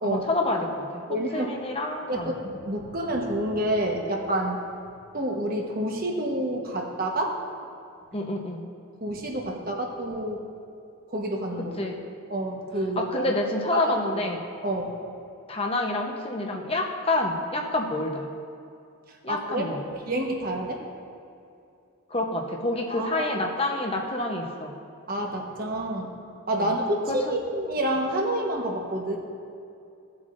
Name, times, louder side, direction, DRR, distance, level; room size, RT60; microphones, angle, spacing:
voice 1, 0.0-1.0 1.3-2.3 8.1-8.6 11.8-12.0 13.0-14.4 15.5-18.3 19.2-19.9 22.1-24.7 26.5-26.7 27.1-27.3, left 2 dB, 25° left, 1 dB, 0.9 m, -28 dB
voice 2, 1.1-1.5 2.1-4.6 5.1-7.4 9.0-10.4 11.1-11.7 12.3-13.0 13.7-13.9 14.6-15.0 19.3-19.7 20.1-20.8 22.9-23.3 25.1-26.1 26.5-29.2, right 1 dB, 40° right, 1 dB, 1.2 m, -28 dB
17.0 x 7.3 x 2.6 m, 2.5 s
head